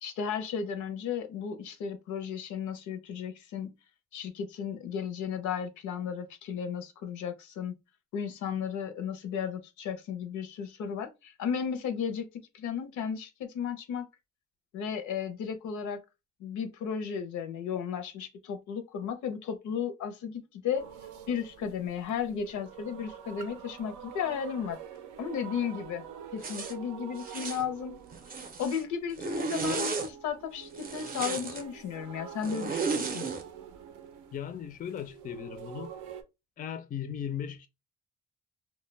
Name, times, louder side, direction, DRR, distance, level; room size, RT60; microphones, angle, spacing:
voice 1, 0.0-3.7 4.1-7.7 8.1-14.1 14.7-16.0 16.4-20.9 21.3-24.8 25.2-26.0 26.3-28.0 28.6-33.3, left 7 dB, 75° left, 0.6 m, -34 dB
sound 1, 20.7-36.2, right 9 dB, 80° right, 0.5 m, -46 dB
Zipper (clothing), 26.4-26.7 27.2-27.6 28.1-28.8 29.2-30.1 30.7-31.6 32.4-33.4, right 4 dB, 30° right, 0.5 m, -34 dB
voice 2, 34.3-35.9 36.6-37.7, left 9 dB, 30° left, 0.4 m, -37 dB
2.1 x 2.1 x 3.1 m
cardioid pair, 90°, 30 cm